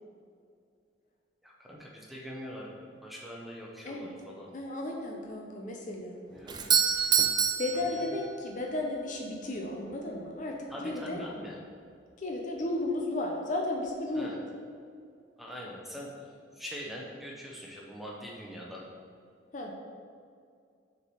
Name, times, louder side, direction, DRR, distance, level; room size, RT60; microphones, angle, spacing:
voice 1, 1.7-2.7 3.0-4.5 6.3-6.8 10.7-11.5 14.2-14.3 15.4-16.1 16.6-18.8, equal, ahead, -3 dB, 0.9 m, -42 dB
voice 2, 4.5-6.2 7.6-11.2 12.2-14.4 19.5-19.7, left 2 dB, 40° left, 0 dB, 0.7 m, -34 dB
Doorbell, 6.5-8.6, right 7 dB, 20° right, 0.4 m, -27 dB
6.6 x 4.6 x 4.7 m, 2.3 s
head